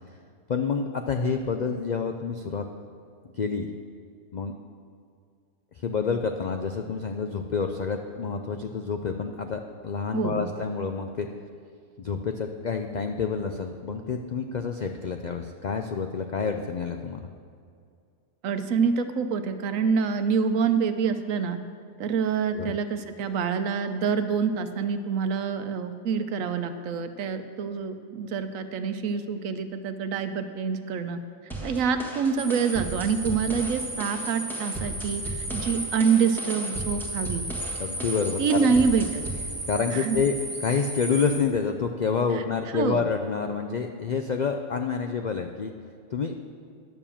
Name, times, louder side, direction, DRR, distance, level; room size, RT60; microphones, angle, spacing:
voice 1, 0.5-2.7 3.3-3.7 4.3-4.6 5.7-11.3 12.0-17.3 22.5-22.7 37.8-38.8 39.7-40.3 40.6-45.7 46.1-46.3, left 5 dB, 80° left, 5 dB, 0.4 m, -28 dB
voice 2, 10.1-10.5 18.4-21.6 22.0-31.2 31.6-37.4 38.4-39.2 39.9-40.2 42.3-42.4 42.7-43.0, right 6 dB, 75° right, 9 dB, 1.1 m, -26 dB
sound 1, 31.5-39.5, right 1 dB, ahead, 1.5 m, -36 dB
sound 2, 32.4-41.4, right 1 dB, 40° right, 1.8 m, -35 dB
11.0 x 7.0 x 7.2 m, 2.3 s
omnidirectional pair, 1.5 m